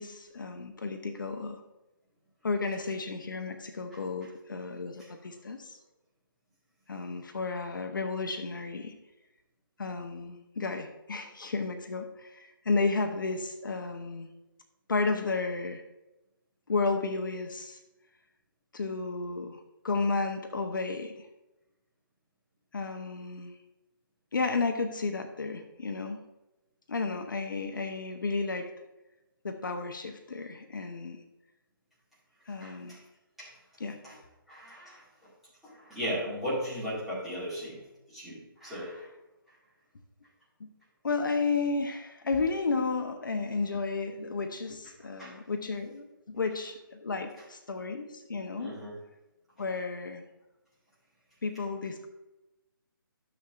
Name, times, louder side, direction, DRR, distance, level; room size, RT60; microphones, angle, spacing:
voice 1, 0.0-1.6 2.4-5.8 6.9-9.0 9.8-14.3 14.9-15.8 16.7-17.8 18.7-21.2 22.7-23.5 24.3-26.2 26.9-28.7 29.4-31.2 32.5-33.0 33.8-34.0 40.6-40.7 41.0-48.8 49.6-50.2 51.4-52.1, left 4 dB, 60° left, 6 dB, 0.9 m, -32 dB
voice 2, 32.6-33.0 33.4-33.5 34.0-34.1 34.5-35.0 35.6-37.8 38.1-39.1 45.0-45.4 48.6-49.0, equal, ahead, -12 dB, 2.0 m, -36 dB
12.5 x 6.9 x 2.5 m, 0.98 s
hypercardioid pair, 180°, 12 cm